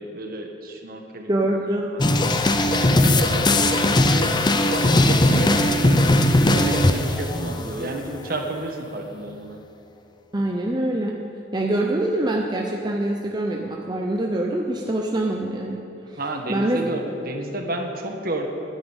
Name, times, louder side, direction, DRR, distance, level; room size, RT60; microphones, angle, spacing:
voice 1, 0.0-1.3 1.9-4.3 4.7-9.6 16.2-18.5, right 1 dB, 50° right, 3 dB, 1.4 m, -31 dB
voice 2, 1.3-1.9 10.3-11.1 11.5-15.8 16.1-16.2 16.5-16.8, right 1 dB, 20° right, 0 dB, 0.8 m, -24 dB
sound 1, 2.0-8.0, left 1 dB, 25° left, 0.6 m, -19 dB
10.0 x 9.6 x 9.0 m, 2.6 s
head